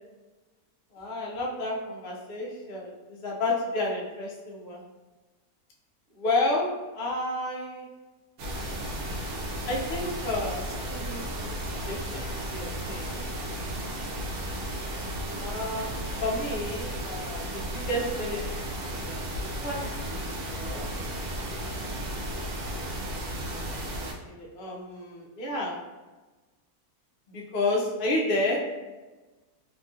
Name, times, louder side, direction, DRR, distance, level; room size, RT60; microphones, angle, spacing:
voice 1, 0.9-4.8 6.2-7.9 9.7-11.6 11.9-13.2 15.4-20.2 20.5-20.9 24.3-25.8 27.3-28.6, left 2 dB, 65° left, -2 dB, 0.5 m, -31 dB
sound 1, 8.4-24.1, right 1 dB, 80° right, 1.0 m, -34 dB
2.8 x 2.3 x 2.6 m, 1.2 s
omnidirectional pair, 1.6 m